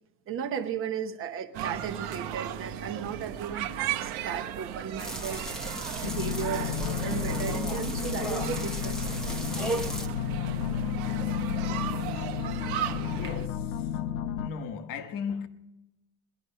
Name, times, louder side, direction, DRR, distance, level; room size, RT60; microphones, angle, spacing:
voice 1, 0.3-5.5 6.0-9.5, right 8 dB, 30° right, 1.0 m, -36 dB
sound 1, 1.5-13.5, right 10 dB, 60° right, 1.0 m, -36 dB
sound 2, 5.0-10.1, right 1 dB, ahead, 0.9 m, -35 dB
sound 3, 6.0-14.5, left 9 dB, 70° left, 0.9 m, -32 dB
voice 2, 13.1-14.0 14.4-15.5, left 6 dB, 50° left, 1.2 m, -37 dB
20.0 x 11.0 x 5.6 m
cardioid pair, 165°, 42 cm